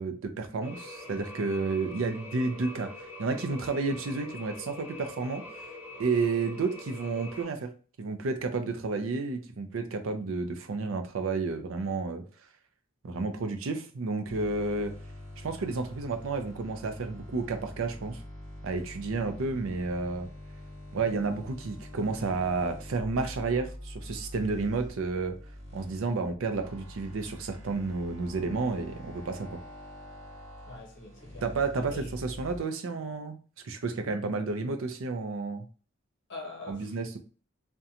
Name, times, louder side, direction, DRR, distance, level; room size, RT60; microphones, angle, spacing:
voice 1, 0.0-5.4 6.0-7.7 8.0-12.2 13.0-15.0 15.4-18.2 18.6-20.3 20.9-25.4 25.7-29.6 31.4-33.4 33.6-35.7 36.7-37.2, right 3 dB, 65° right, 0.4 m, -31 dB
sound 1, 0.6-7.4, left 2 dB, 10° right, 1.0 m, -44 dB
sound 2, 14.3-32.6, left 1 dB, 30° right, 1.2 m, -45 dB
voice 2, 30.7-31.4 31.7-32.2 34.0-34.2 36.3-37.0, left 2 dB, 55° left, 0.7 m, -43 dB
2.5 x 2.2 x 2.7 m
head